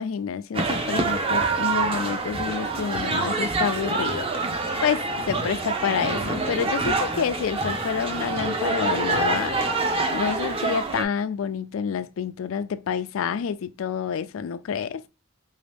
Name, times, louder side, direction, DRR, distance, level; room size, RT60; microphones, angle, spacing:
voice 1, 0.0-4.3 4.8-9.6 10.1-15.0, left 7 dB, 90° left, 0.4 m, -28 dB
sound 1, 0.5-11.0, right 3 dB, 30° right, 0.5 m, -26 dB
2.9 x 2.7 x 3.4 m
head